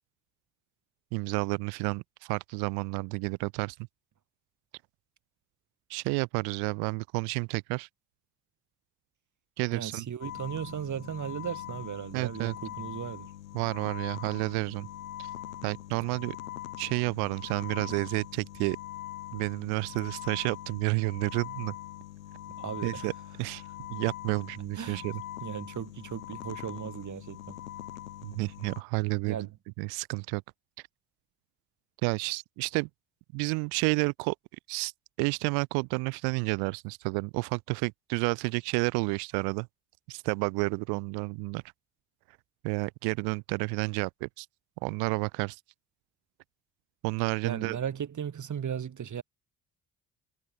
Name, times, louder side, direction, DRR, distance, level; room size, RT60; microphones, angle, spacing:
voice 1, 1.1-3.8 5.9-7.9 9.6-10.1 12.1-12.5 13.5-14.9 15.2-15.3 15.6-16.4 16.8-18.8 19.3-21.7 22.8-23.1 23.4-23.6 23.9-25.2 28.2-29.5 29.8-30.4 32.0-32.9 33.3-34.3 34.7-34.9 35.2-39.7 40.1-41.6 42.6-44.5 44.8-45.6 47.0-47.8, right 34 dB, 70° right, 0.8 m, -30 dB
voice 2, 9.7-13.3 22.6-23.1 24.8-25.0 25.4-27.6 29.2-29.5 47.4-49.2, right 8 dB, 45° right, 5.5 m, -36 dB
sound 1, 10.2-28.8, left 13 dB, 85° left, 2.7 m, -42 dB
hypercardioid pair, 50°, 39 cm